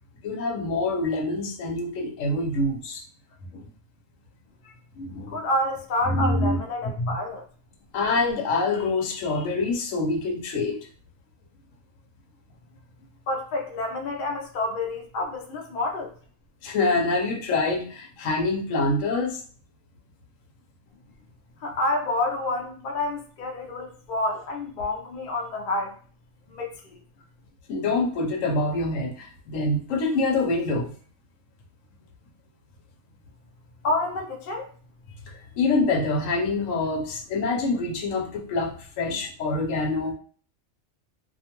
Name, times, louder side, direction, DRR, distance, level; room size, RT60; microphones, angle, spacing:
voice 1, 0.2-3.0 3.5-3.7 5.0-5.5 6.1-6.6 7.0-7.1 7.9-10.8 16.6-19.4 27.7-30.9 35.3-40.1, left 2 dB, 85° left, 1 dB, 1.0 m, -26 dB
voice 2, 5.3-7.5 13.3-16.1 21.6-26.0 26.5-27.0 33.8-34.7, left 2 dB, 55° left, 1 dB, 0.6 m, -28 dB
2.5 x 2.2 x 2.9 m, 0.43 s
omnidirectional pair, 1.3 m